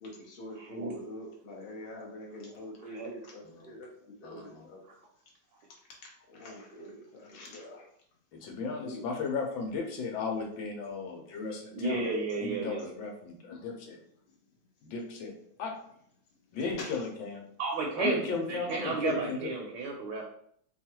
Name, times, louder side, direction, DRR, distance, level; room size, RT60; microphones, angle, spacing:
voice 1, 0.0-4.8 6.0-7.9 8.7-9.0 16.5-17.0, left 1 dB, 45° left, -2 dB, 0.7 m, -45 dB
voice 2, 0.6-0.9 2.9-3.1 11.7-12.9 17.6-20.2, right 3 dB, 70° right, 0 dB, 1.2 m, -32 dB
voice 3, 4.2-4.7 8.3-12.1 12.4-14.0 14.8-15.3 15.6-15.7 16.5-17.4 18.0-19.5, left 4 dB, 75° left, 1 dB, 1.5 m, -35 dB
3.4 x 2.4 x 4.3 m, 0.66 s
omnidirectional pair, 2.2 m